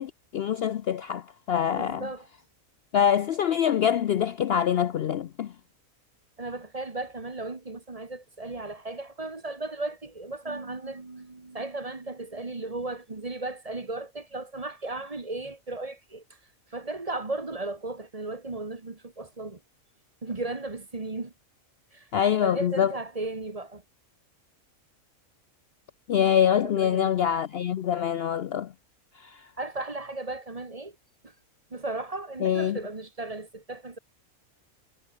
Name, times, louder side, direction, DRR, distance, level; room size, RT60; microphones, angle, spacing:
voice 1, 0.0-2.1 2.9-5.5 22.1-22.9 26.1-28.7 29.2-29.5 32.4-32.8, left 9 dB, 60° left, 0.7 m, -25 dB
voice 2, 1.7-2.3 6.4-16.2 16.7-19.6 20.2-21.3 21.9-22.1 22.4-23.8 26.8-27.2 29.6-30.9 31.2-31.3 31.7-34.0, right 2 dB, 25° right, 1.4 m, -35 dB
omnidirectional pair, 1.4 m